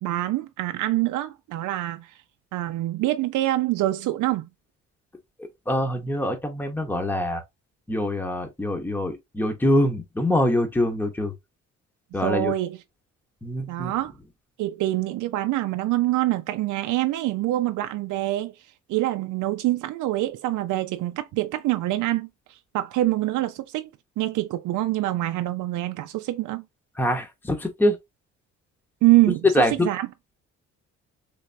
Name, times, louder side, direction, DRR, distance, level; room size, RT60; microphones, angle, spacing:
voice 1, 0.0-2.1 2.5-4.5 12.2-12.8 13.7-14.1 14.6-18.5 18.9-23.9 24.2-26.6 29.0-30.1, right 16 dB, 80° right, 0.5 m, -25 dB
voice 2, 5.7-7.4 7.9-11.3 12.1-12.5 13.4-13.9 27.0-28.0 29.5-29.9, left 1 dB, 5° left, 0.9 m, -24 dB
3.4 x 3.2 x 2.6 m
cardioid pair, 90°, 30 cm